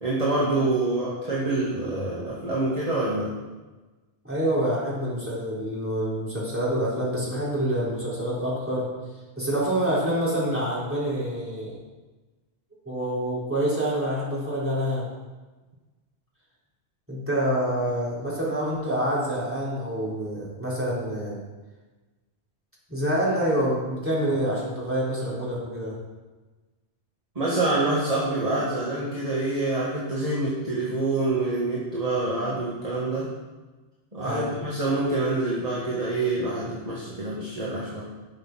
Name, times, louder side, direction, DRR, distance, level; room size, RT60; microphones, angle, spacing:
voice 1, 0.0-3.3 27.4-33.3 34.1-38.0, right 2 dB, 35° right, -7 dB, 2.0 m, -26 dB
voice 2, 4.2-8.9 9.4-11.8 12.9-15.1 17.1-21.4 22.9-26.0 34.2-34.5, right 1 dB, 10° right, -8 dB, 4.1 m, -27 dB
12.0 x 6.6 x 6.2 m, 1.2 s
omnidirectional pair, 1.1 m